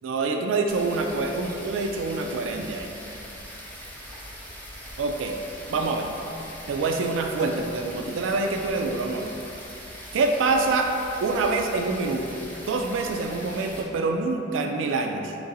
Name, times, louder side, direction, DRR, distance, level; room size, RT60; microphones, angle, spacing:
voice 1, 0.0-2.9 5.0-5.4 5.7-6.1 6.7-9.3 10.1-10.9 11.2-12.4 12.7-15.4, right 3 dB, 85° right, 3 dB, 0.3 m, -26 dB
sound 1, 0.7-13.8, equal, 10° left, 0.6 m, -41 dB
3.8 x 3.0 x 4.0 m, 2.8 s
head